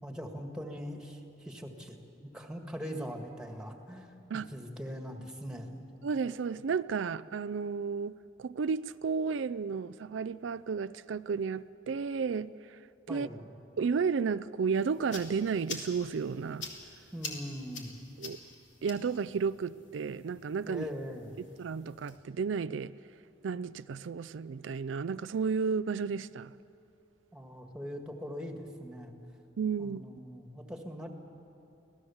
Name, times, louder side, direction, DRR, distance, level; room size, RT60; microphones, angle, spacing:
voice 1, 0.0-4.1 4.5-5.8 13.1-13.5 17.1-17.9 20.7-21.3 27.3-29.1 29.8-31.1, equal, 5° right, 3 dB, 1.9 m, -41 dB
voice 2, 6.0-12.5 13.1-13.3 13.8-16.7 18.2-18.4 18.8-20.8 21.6-22.9 23.4-26.5 29.6-30.0, right 5 dB, 90° right, 14 dB, 0.4 m, -32 dB
sound 1, 14.7-22.2, left 4 dB, 80° left, 3.0 m, -47 dB
25.5 x 17.5 x 7.2 m, 2.8 s
head